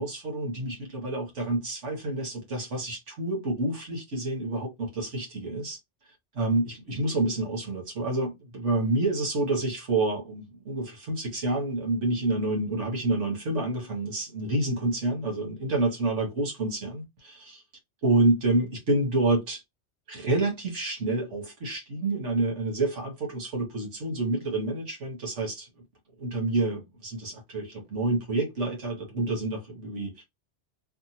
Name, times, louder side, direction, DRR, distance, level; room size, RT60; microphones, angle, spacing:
voice 1, 0.0-5.8 6.4-17.6 18.0-19.6 20.1-25.7 26.2-30.2, right 2 dB, 90° right, 1.8 m, -28 dB
3.4 x 2.3 x 2.8 m
omnidirectional pair, 1.2 m